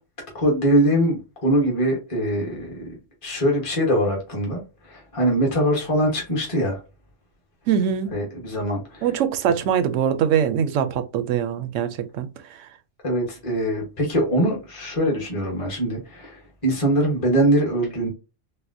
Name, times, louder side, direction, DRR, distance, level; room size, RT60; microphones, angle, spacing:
voice 1, 0.3-2.9 3.2-4.6 4.9-6.8 8.1-9.0 13.0-18.1, right 1 dB, 30° left, 1.2 m, -22 dB
voice 2, 7.7-8.1 9.0-12.7, right 8 dB, 85° right, 0.9 m, -23 dB
4.1 x 2.1 x 2.6 m
omnidirectional pair, 1.2 m